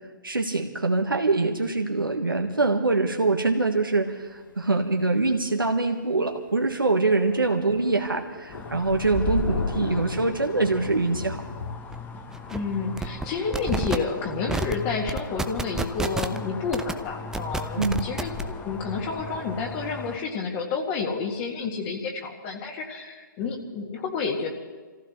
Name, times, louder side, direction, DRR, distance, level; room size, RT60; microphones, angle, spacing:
voice 1, 0.2-11.4 17.8-18.0, right 3 dB, 90° right, 3 dB, 1.5 m, -24 dB
Thunder, 4.7-4.9 5.3-5.4 5.7-5.8 6.2-6.3 6.5-11.7, left 4 dB, 75° left, 1.5 m, -37 dB
sound 1, 8.5-20.2, left 3 dB, 15° left, 1.0 m, -36 dB
sound 2, 11.9-12.0 12.3-12.6 13.0-13.3 13.5-14.0 14.5-14.7 15.1-16.4 16.7-16.9 17.3-18.4, right 3 dB, 5° right, 0.5 m, -28 dB
voice 2, 12.5-24.5, left 4 dB, 30° left, 1 dB, 2.0 m, -30 dB
28.0 x 15.0 x 3.2 m, 1.4 s
figure-of-eight pair, 125°, 11 cm